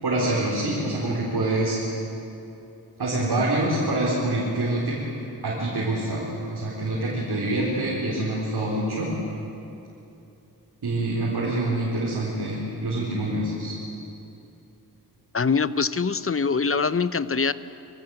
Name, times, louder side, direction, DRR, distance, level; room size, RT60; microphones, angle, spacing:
voice 1, 0.0-1.8 3.0-5.0 5.4-9.1 10.8-13.7, right 2 dB, 75° right, -6 dB, 4.3 m, -26 dB
voice 2, 15.3-17.5, left 5 dB, 35° left, 15 dB, 0.8 m, -23 dB
24.5 x 16.0 x 7.9 m, 2.8 s
cardioid pair, 50°, 39 cm